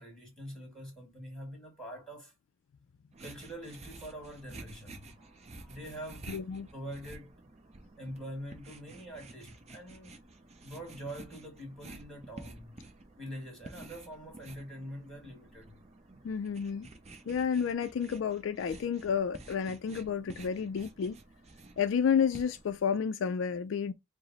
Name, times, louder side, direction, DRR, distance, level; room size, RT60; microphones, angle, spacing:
voice 1, 0.0-2.3 3.2-6.3 6.7-7.4 8.0-10.2 10.6-12.9 13.2-15.7, equal, 5° left, 1.7 m, -45 dB
sound 1, 3.1-22.8, right 2 dB, 30° right, 0.6 m, -51 dB
voice 2, 6.3-6.7 16.2-16.9 17.3-21.2 21.8-23.9, left 7 dB, 60° left, 0.3 m, -30 dB
4.8 x 2.0 x 3.9 m
head